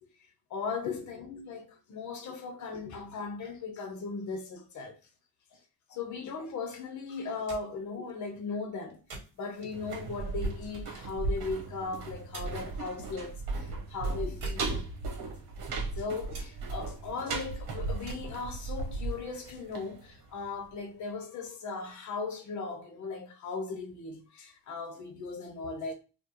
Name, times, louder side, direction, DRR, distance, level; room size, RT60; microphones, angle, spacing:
voice 1, 0.5-5.0 5.5-5.6 5.9-9.0 9.4-14.9 16.0-25.9, left 4 dB, 45° left, 0.8 m, -38 dB
sound 1, 7.3-21.1, right 2 dB, 55° right, 1.8 m, -53 dB
sound 2, 9.7-20.5 20.8-20.9, right 3 dB, 70° right, 1.3 m, -36 dB
4.6 x 2.2 x 3.0 m
cardioid pair, 160°, 40 cm